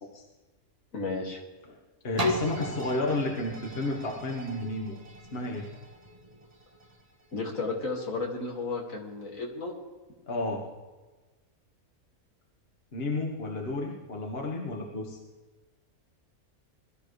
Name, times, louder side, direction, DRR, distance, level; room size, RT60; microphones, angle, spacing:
voice 1, 0.9-1.4 7.3-9.7, left 3 dB, 60° left, 0 dB, 2.6 m, -33 dB
voice 2, 2.0-4.9 5.3-5.6 10.3-10.6 12.9-15.2, left 2 dB, 40° left, 0 dB, 1.8 m, -32 dB
sound 1, 2.2-7.9 8.5-8.6, left 1 dB, 25° right, 1.4 m, -36 dB
21.5 x 13.0 x 3.3 m, 1.2 s
omnidirectional pair, 1.5 m